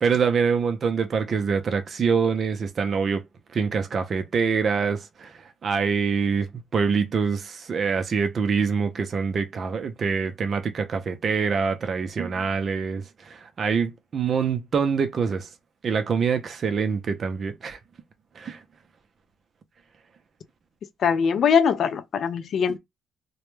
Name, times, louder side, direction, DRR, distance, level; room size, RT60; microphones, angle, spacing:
voice 1, 0.0-3.2 3.5-5.3 5.6-6.5 6.7-15.5 15.8-17.8 18.4-18.6, right 5 dB, 50° right, 0.4 m, -25 dB
voice 2, 21.0-22.8, left 7 dB, 60° left, 0.4 m, -21 dB
2.1 x 2.1 x 3.0 m
cardioid pair, 90°, 0 cm